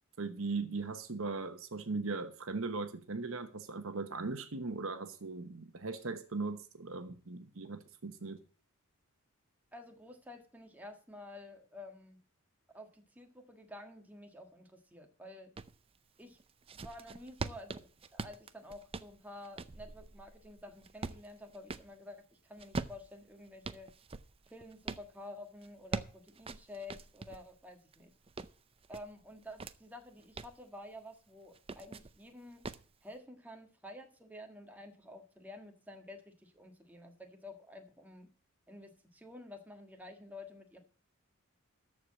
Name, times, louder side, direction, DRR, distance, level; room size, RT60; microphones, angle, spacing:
voice 1, 0.2-8.4, right 3 dB, 65° right, 1.0 m, -39 dB
voice 2, 9.7-12.2 12.7-15.5 16.2-16.4 16.8-23.9 24.5-28.1 28.9-32.6 33.0-38.3 38.7-40.8, left 1 dB, 5° right, 1.5 m, -50 dB
sound 1, 15.6-15.8 16.4-21.9 22.6-25.1 25.6-27.5 27.9-29.8 30.2-30.6 31.5-32.2 32.6-32.9, right 3 dB, 25° right, 0.5 m, -43 dB
13.5 x 4.8 x 7.3 m
head